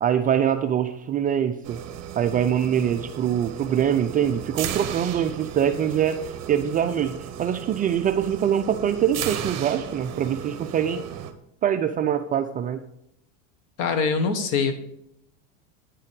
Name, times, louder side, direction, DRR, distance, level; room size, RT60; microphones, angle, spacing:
voice 1, 0.0-1.8 2.2-11.0 11.6-12.8, right 9 dB, 25° right, 7 dB, 0.3 m, -24 dB
sound 1, 1.6-11.3, right 9 dB, 45° right, 1.1 m, -35 dB
voice 2, 13.8-14.7, left 5 dB, 55° left, 8 dB, 1.4 m, -23 dB
9.2 x 5.6 x 5.2 m, 0.77 s
supercardioid pair, 125°, 38 cm